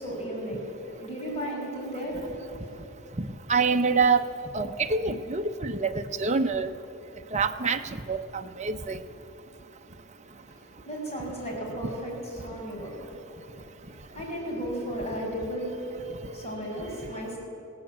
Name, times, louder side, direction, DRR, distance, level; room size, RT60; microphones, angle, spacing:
voice 1, 0.0-2.9 10.4-13.5 13.8-17.4, equal, 30° left, -2 dB, 6.3 m, -35 dB
voice 2, 3.2-4.3 4.5-6.7 7.3-7.8 8.1-9.0, right 4 dB, 35° right, 6 dB, 0.9 m, -26 dB
21.0 x 16.0 x 8.8 m, 2.9 s
head